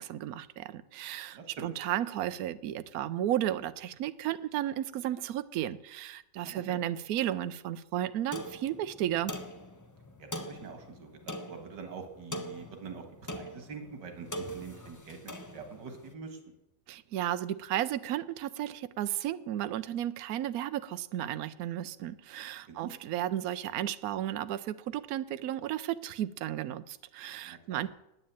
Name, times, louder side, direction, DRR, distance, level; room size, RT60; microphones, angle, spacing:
voice 1, 0.0-9.3 16.9-27.9, right 12 dB, 65° right, 13 dB, 1.0 m, -34 dB
voice 2, 1.3-1.7 6.4-6.8 10.2-13.1 13.3-16.4 22.7-22.9 27.5-27.8, right 5 dB, 90° right, 6 dB, 2.2 m, -45 dB
sound 1, 8.3-16.1, equal, 20° left, 0.6 m, -42 dB
9.5 x 9.0 x 8.8 m, 0.88 s
omnidirectional pair, 1.8 m